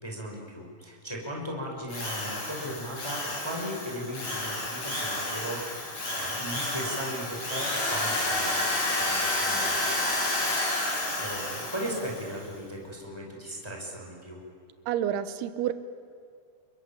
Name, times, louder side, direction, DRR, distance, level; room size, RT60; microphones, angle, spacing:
voice 1, 0.0-10.2 11.2-14.4, equal, 5° left, 0 dB, 4.9 m, -37 dB
Drill, 1.9-12.3, left 1 dB, 35° left, 7.1 m, -30 dB
voice 2, 14.9-15.7, right 10 dB, 70° right, 12 dB, 2.6 m, -29 dB
29.5 x 22.5 x 8.8 m, 2.5 s
omnidirectional pair, 5.6 m